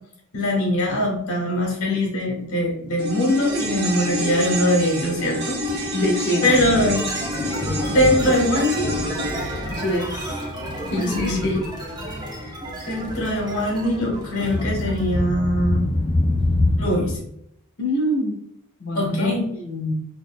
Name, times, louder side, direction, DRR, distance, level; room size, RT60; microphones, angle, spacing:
voice 1, 0.3-6.0 6.4-7.1 7.9-8.9 10.9-11.4 12.9-15.8 16.8-17.2 18.9-19.4, left 1 dB, 75° left, -1 dB, 1.4 m, -22 dB
sound 1, 3.0-11.5 11.7-11.8, equal, 50° right, 1.1 m, -29 dB
Thunder, 3.5-17.2, left 2 dB, 25° left, 0.4 m, -28 dB
voice 2, 5.9-6.5 9.7-10.4 10.9-11.6 17.8-18.4 18.8-19.9, left 1 dB, 55° left, -1 dB, 1.1 m, -25 dB
sound 2, 6.9-15.2, right 1 dB, 20° right, 0.9 m, -33 dB
3.9 x 3.1 x 2.2 m, 0.73 s
head